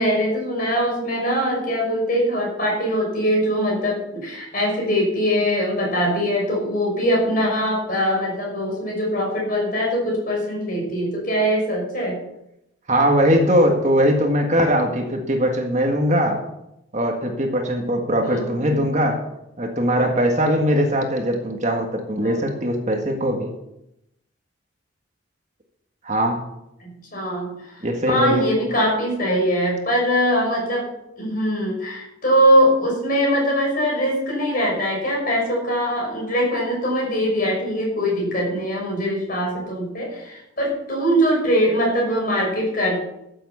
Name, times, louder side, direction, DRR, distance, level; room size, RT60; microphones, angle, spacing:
voice 1, 0.0-12.2 18.2-18.8 22.2-22.4 26.8-27.7 28.1-43.0, equal, 45° left, -2 dB, 5.7 m, -22 dB
voice 2, 12.9-16.4 16.9-19.2 19.6-23.5 26.0-26.4 27.8-28.5, equal, 35° right, 2 dB, 1.7 m, -20 dB
13.0 x 7.5 x 7.1 m, 0.85 s
head